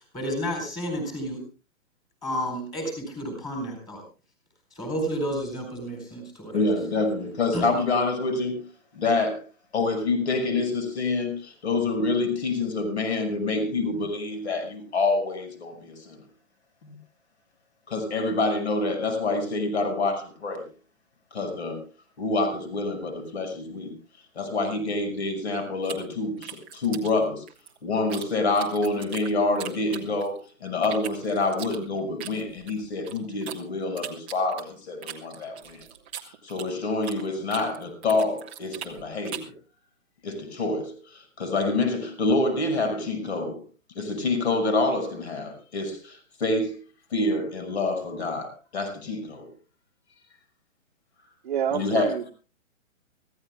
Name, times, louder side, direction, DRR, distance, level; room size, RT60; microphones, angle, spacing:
voice 1, 0.1-1.4 2.2-4.0 4.8-6.6 7.5-7.7, equal, 10° left, 4.1 m, -31 dB
voice 2, 6.5-8.7 8.9-9.4 9.7-16.2 16.8-17.0 17.9-20.6 21.3-21.8 22.2-24.0 24.4-27.4 27.8-35.8 36.2-39.5 40.2-43.6 43.9-46.8 47.1-49.5 51.7-52.1, left 3 dB, 55° left, 5.9 m, -27 dB
sound 1, 25.8-28.3 28.6-30.4 30.8-33.6 34.0-37.2 37.5-39.6, right 9 dB, 10° right, 0.7 m, -40 dB
voice 3, 51.4-52.3, right 8 dB, 40° right, 1.1 m, -27 dB
24.5 x 15.5 x 2.3 m
hypercardioid pair, 170°, 40 cm